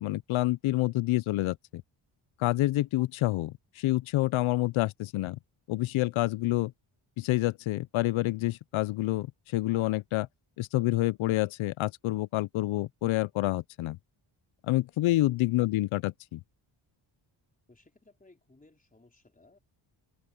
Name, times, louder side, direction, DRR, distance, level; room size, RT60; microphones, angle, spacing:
voice 1, 0.0-1.8 2.4-5.4 5.7-6.7 7.2-10.3 10.6-14.0 14.7-16.4, left 17 dB, 75° left, 0.6 m, -28 dB
voice 2, 17.7-19.6, left 2 dB, 15° left, 4.2 m, -60 dB
cardioid pair, 100°, 49 cm